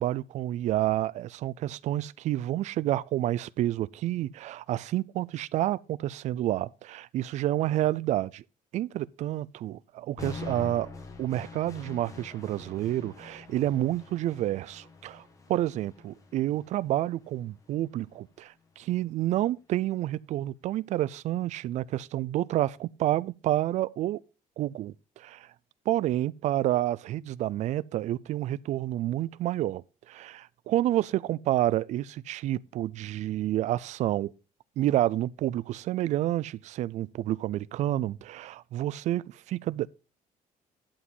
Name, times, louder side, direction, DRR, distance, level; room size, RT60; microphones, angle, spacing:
voice 1, 0.0-8.4 8.7-10.9 11.2-15.2 15.5-24.2 24.6-25.5 25.9-34.3 34.8-39.9, right 14 dB, 50° right, 0.4 m, -29 dB
Energy-Blast-And-Echo, 10.2-18.2, left 4 dB, 20° left, 1.6 m, -45 dB
11.5 x 5.0 x 5.3 m
cardioid pair, 180°, 15 cm